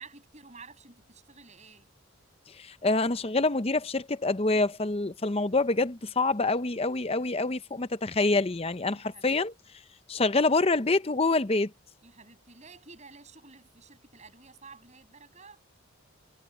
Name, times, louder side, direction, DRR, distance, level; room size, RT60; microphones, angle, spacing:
voice 1, 0.0-1.9 8.9-9.4 10.3-10.4 12.0-15.6, right 4 dB, 35° right, 7.4 m, -51 dB
voice 2, 2.5-9.5 10.1-11.7, left 3 dB, 30° left, 0.7 m, -26 dB
head